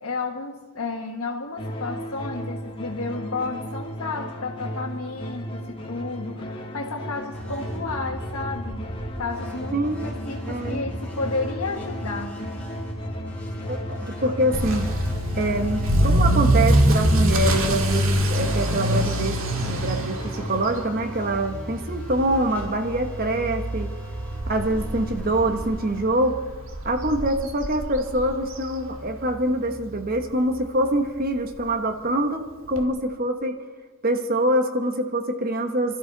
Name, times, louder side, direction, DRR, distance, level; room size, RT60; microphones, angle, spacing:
voice 1, 0.0-8.9 9.2-12.5, left 3 dB, 80° left, -2 dB, 1.4 m, -32 dB
sound 1, 1.6-20.7, equal, 25° left, 1.8 m, -35 dB
sound 2, 7.3-26.9, equal, 5° left, 4.2 m, -38 dB
voice 2, 9.7-10.0 10.5-10.8 13.7-14.9 15.3-19.4 19.7-23.9 24.5-26.4 26.8-33.6 34.0-36.0, right 1 dB, 40° right, 6 dB, 1.2 m, -25 dB
Motor vehicle (road) / Accelerating revving vroom, 14.5-29.4 29.7-30.1 30.6-30.7 31.0-31.1 31.4-31.5 32.8-32.9, right 1 dB, 65° right, 1.9 m, -25 dB
25.0 x 13.5 x 4.0 m, 1.4 s
head